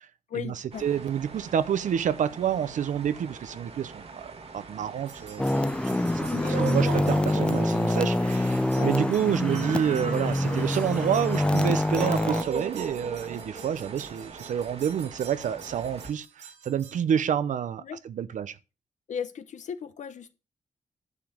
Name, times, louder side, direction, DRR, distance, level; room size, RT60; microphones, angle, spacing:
voice 1, 0.3-0.9 6.3-6.8 8.8-8.9 17.8-18.0 19.1-20.3, left 7 dB, 75° left, 1.0 m, -36 dB
sound 1, 0.7-16.1, right 4 dB, 50° right, 1.7 m, -45 dB
voice 2, 0.8-4.2 4.5-18.5, right 9 dB, 85° right, 0.7 m, -29 dB
sound 2, 5.1-17.0, right 5 dB, 65° right, 2.4 m, -38 dB
sound 3, 5.4-12.4, left 1 dB, 10° left, 0.5 m, -26 dB
11.0 x 5.1 x 7.1 m
wide cardioid pair, 140°, 13 cm